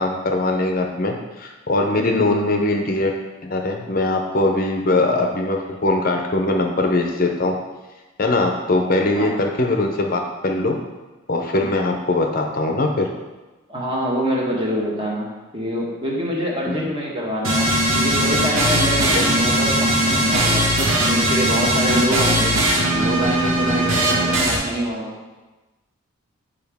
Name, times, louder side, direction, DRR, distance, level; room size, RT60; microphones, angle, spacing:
voice 1, 0.0-3.1 3.4-7.6 8.2-10.8 11.3-13.1 16.7-16.8 19.1-19.3 21.9-22.0, left 2 dB, 40° left, 3 dB, 0.6 m, -21 dB
voice 2, 2.0-2.3 9.1-9.5 13.7-20.7 21.1-22.6 22.9-25.2, equal, 25° right, -3 dB, 1.3 m, -25 dB
sound 1, 17.4-24.6, right 1 dB, 90° right, 1.7 m, -19 dB
9.1 x 5.0 x 3.5 m, 1.2 s
head